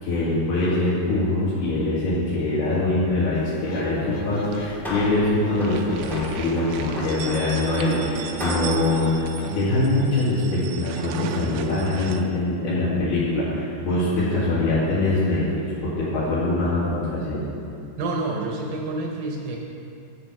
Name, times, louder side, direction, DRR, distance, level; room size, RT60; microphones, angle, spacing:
voice 1, 0.0-17.5, left 2 dB, 90° left, -12 dB, 4.3 m, -23 dB
sound 1, 3.3-9.6, equal, 70° left, 2.5 m, -38 dB
sound 2, 4.4-10.3, left 1 dB, ahead, 0.9 m, -35 dB
sound 3, 4.4-5.2 5.5-12.2, right 9 dB, 90° right, 2.5 m, -38 dB
voice 2, 18.0-19.6, right 2 dB, 70° right, 0 dB, 2.1 m, -28 dB
10.5 x 8.1 x 5.9 m, 2.5 s
omnidirectional pair, 4.3 m